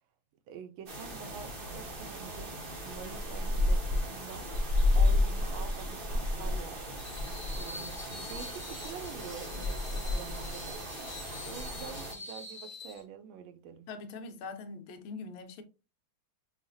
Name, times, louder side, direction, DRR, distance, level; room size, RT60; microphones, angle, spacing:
voice 1, 0.5-4.5 4.9-7.0 7.6-10.8 11.4-13.9, right 7 dB, 80° right, 1.3 m, -46 dB
sound 1, 0.9-12.1, left 2 dB, 45° right, 0.7 m, -32 dB
Screech, 7.0-13.0, left 2 dB, 20° left, 0.7 m, -46 dB
voice 2, 13.9-15.6, left 4 dB, 75° left, 1.5 m, -42 dB
5.7 x 2.4 x 2.6 m
omnidirectional pair, 2.3 m